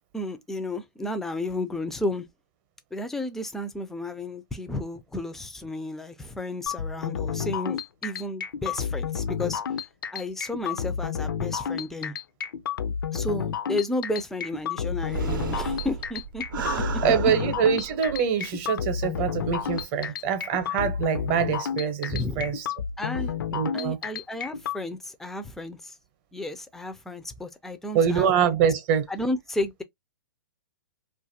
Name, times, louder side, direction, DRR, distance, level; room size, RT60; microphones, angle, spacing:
voice 1, 0.1-2.3 2.9-9.6 10.1-12.1 13.1-16.4 16.9-17.3 22.1-22.5 23.0-23.3 23.7-26.0 26.3-28.3 29.1-29.8, left 2 dB, 5° left, 0.3 m, -32 dB
sound 1, 6.7-24.8, left 7 dB, 80° left, 0.4 m, -31 dB
sound 2, 14.9-18.5 18.8-18.9 19.4-19.8, right 8 dB, 70° right, 0.6 m, -34 dB
voice 2, 17.0-22.7 23.5-24.0 27.9-29.1, right 7 dB, 40° right, 0.7 m, -24 dB
2.6 x 2.4 x 2.6 m
hypercardioid pair, 135°, 11 cm